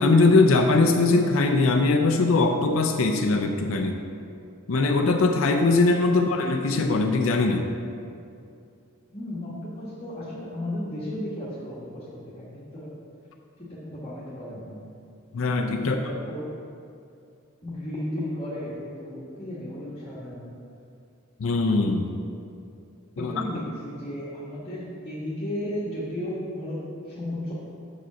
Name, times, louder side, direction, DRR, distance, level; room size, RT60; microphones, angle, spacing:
voice 1, 0.0-4.0 4.7-7.7 15.3-16.0 21.4-22.1 23.2-23.3, left 3 dB, 75° left, 4 dB, 0.5 m, -21 dB
voice 2, 9.1-12.9 13.6-15.0 15.8-16.5 17.6-20.5 23.2-27.5, left 1 dB, 30° left, -9 dB, 1.2 m, -34 dB
6.8 x 5.0 x 5.9 m, 2.5 s
head